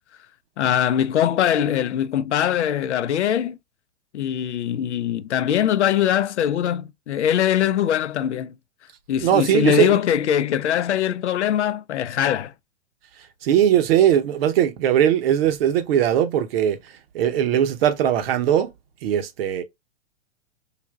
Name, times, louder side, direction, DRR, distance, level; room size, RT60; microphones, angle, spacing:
voice 1, 0.6-3.6 4.1-8.5 9.1-12.5, left 10 dB, 90° left, 0.5 m, -22 dB
voice 2, 9.2-9.9 13.4-16.8 17.1-18.7 19.0-19.6, right 10 dB, 60° right, 0.8 m, -19 dB
5.0 x 2.6 x 2.3 m
hypercardioid pair, 115°, 34 cm